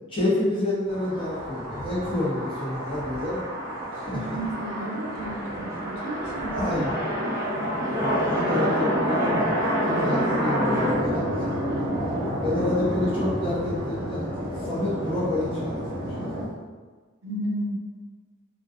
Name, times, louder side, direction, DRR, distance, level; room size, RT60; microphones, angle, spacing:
voice 1, 0.1-3.4 3.9-4.4 6.5-6.9 8.0-9.5 9.8-11.2 12.4-14.3 14.6-16.1 16.4-16.5, left 1 dB, 25° left, -8 dB, 0.7 m, -28 dB
sound 1, 0.9-16.5, equal, 15° right, 0.5 m, -28 dB
voice 2, 4.1-6.9 11.8-12.4 17.2-17.7, right 1 dB, 70° right, -2 dB, 0.5 m, -33 dB
2.5 x 2.3 x 2.4 m, 1.4 s
head